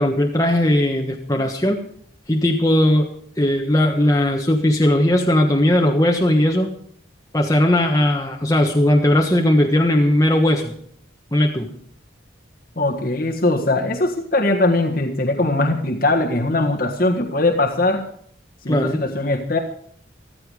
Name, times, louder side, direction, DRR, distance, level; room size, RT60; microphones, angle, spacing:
voice 1, 0.0-1.8 2.3-3.1 3.4-6.7 7.3-10.7 11.3-11.7 18.7-19.0, left 1 dB, 15° left, 1 dB, 1.3 m, -18 dB
voice 2, 12.7-18.0 18.6-19.6, left 2 dB, 50° left, 2 dB, 1.6 m, -20 dB
14.5 x 14.0 x 4.9 m, 0.63 s
head